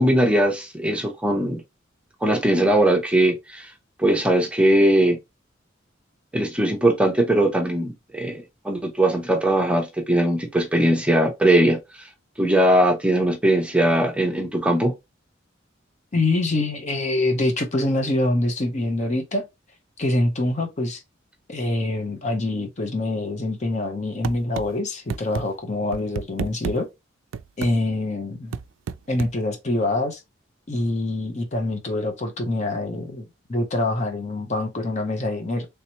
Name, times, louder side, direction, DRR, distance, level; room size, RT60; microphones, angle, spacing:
voice 1, 0.0-1.6 2.2-3.7 4.0-5.2 6.3-11.8 12.4-14.9, right 1 dB, 5° right, 0.7 m, -20 dB
voice 2, 16.1-19.5 20.0-21.0 21.5-26.9 27.6-28.6 29.1-30.2 30.7-35.7, left 2 dB, 35° left, 0.7 m, -25 dB
sound 1, 24.2-24.7 25.1-25.4 25.9-26.8 27.3-27.7 28.5-29.3, right 6 dB, 85° right, 0.3 m, -30 dB
3.3 x 2.9 x 2.9 m
head